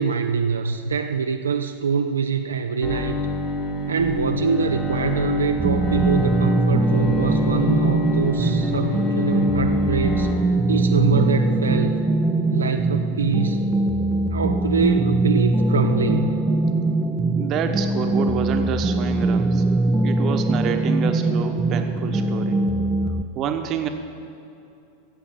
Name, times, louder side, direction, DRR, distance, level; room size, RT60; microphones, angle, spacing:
voice 1, 0.0-3.2 3.9-10.3 10.7-12.0 12.5-13.6 14.3-16.3, right 6 dB, 70° right, 5 dB, 0.5 m, -24 dB
Bowed string instrument, 2.8-10.3, left 2 dB, 30° left, 2.0 m, -27 dB
sound 1, 5.6-23.2, right 2 dB, 10° right, 0.6 m, -22 dB
voice 2, 17.3-19.6 20.0-22.6 23.3-23.9, right 8 dB, 35° right, 6 dB, 1.1 m, -28 dB
15.0 x 8.0 x 7.6 m, 2.7 s
figure-of-eight pair, 90°, 0 cm